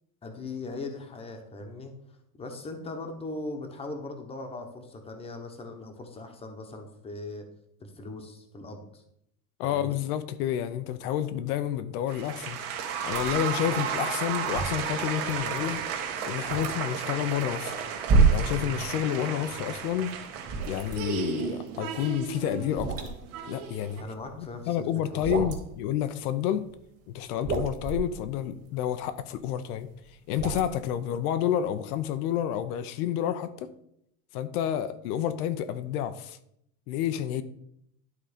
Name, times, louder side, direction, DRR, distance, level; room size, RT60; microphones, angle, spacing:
voice 1, 0.2-1.9 2.4-7.5 7.8-9.0 9.6-10.0 13.7-14.1 19.2-19.8 24.0-24.8 25.1-25.5, left 2 dB, 15° left, 1.0 m, -40 dB
voice 2, 9.6-12.6 13.0-15.8 16.2-17.7 18.3-20.2 20.6-23.1 23.5-24.0 24.4-26.7 27.1-29.9 30.3-33.7 34.3-36.4 36.9-37.4, left 10 dB, 80° left, 0.7 m, -29 dB
sound 1, 12.1-24.0, right 7 dB, 75° right, 1.6 m, -34 dB
sound 2, 13.0-19.2 19.5-24.5 24.9-25.8 26.4-26.9 27.2-31.0, right 4 dB, 30° right, 1.9 m, -29 dB
11.5 x 3.8 x 5.1 m
supercardioid pair, 145°, 44 cm